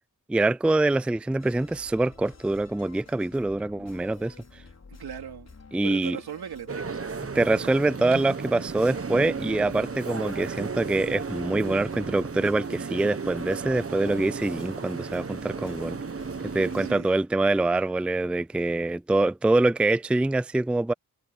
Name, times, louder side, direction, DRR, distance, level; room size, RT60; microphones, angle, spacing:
voice 1, 0.3-4.6 5.7-6.2 7.4-16.0 16.4-20.9, right 2 dB, 5° right, 0.4 m, -25 dB
sound 1, 1.4-17.0, left 4 dB, 45° left, 4.3 m, -50 dB
voice 2, 4.9-5.5 5.8-7.1 16.8-17.2, right 9 dB, 85° right, 3.6 m, -38 dB
sound 2, 6.7-16.9, right 5 dB, 40° right, 1.4 m, -34 dB
cardioid pair, 50°, 37 cm